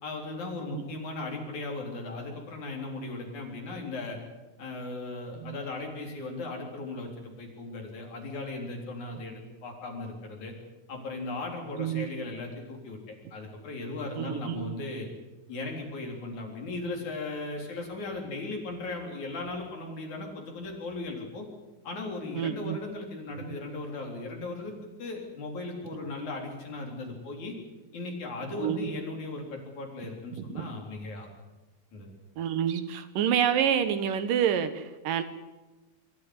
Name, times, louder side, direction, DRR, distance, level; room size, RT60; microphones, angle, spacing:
voice 1, 0.0-4.2 4.6-10.5 10.9-13.0 13.3-15.1 15.5-21.5 21.8-27.6 27.9-31.3 31.9-32.1, left 2 dB, 60° left, 1 dB, 5.2 m, -37 dB
voice 2, 11.8-12.1 14.2-14.7 22.4-22.8 28.6-28.9 30.6-30.7 32.4-35.2, right 9 dB, 80° right, 11 dB, 2.8 m, -28 dB
25.0 x 13.5 x 9.7 m, 1.2 s
omnidirectional pair, 3.9 m